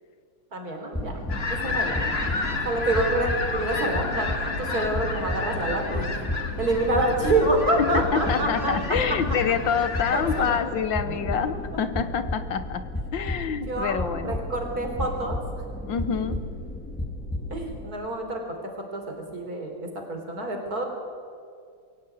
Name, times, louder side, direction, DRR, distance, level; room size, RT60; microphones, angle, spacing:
voice 1, 0.5-1.2 1.5-2.1 2.5-4.3 4.6-6.1 6.6-8.7 10.1-10.5 10.8-10.9 13.7-14.0 14.2-15.4 17.5-20.8, right 2 dB, 50° right, 3 dB, 4.1 m, -27 dB
sound 1, 0.9-17.9, left 1 dB, 5° left, 1.7 m, -33 dB
sound 2, 1.3-10.6, left 3 dB, 30° left, 1.9 m, -31 dB
voice 2, 7.8-14.4 15.9-16.4, left 7 dB, 75° left, 12 dB, 1.7 m, -27 dB
22.5 x 17.0 x 9.2 m, 2.3 s
omnidirectional pair, 2.1 m